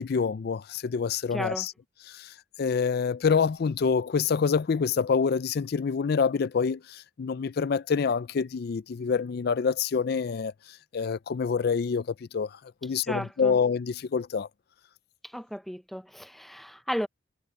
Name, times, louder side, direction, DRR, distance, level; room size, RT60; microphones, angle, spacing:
voice 1, 0.0-1.7 2.1-2.3 2.6-10.5 10.9-14.5, left 6 dB, 55° left, 0.4 m, -27 dB
voice 2, 1.3-1.7 13.1-13.6 15.2-17.1, equal, ahead, 0.7 m, -34 dB
head